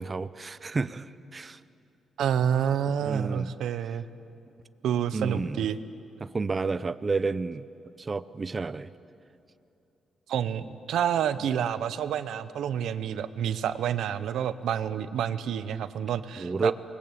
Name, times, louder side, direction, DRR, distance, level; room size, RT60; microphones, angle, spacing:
voice 1, 0.0-1.6 3.0-3.5 5.1-5.7 6.2-7.7 8.0-8.9 16.4-16.7, right 4 dB, 25° right, 15 dB, 0.6 m, -30 dB
voice 2, 2.2-4.0 4.8-5.8 10.3-16.7, right 9 dB, 80° right, 12 dB, 1.0 m, -28 dB
27.5 x 21.5 x 8.4 m, 2.8 s
cardioid pair, 115°, 0 cm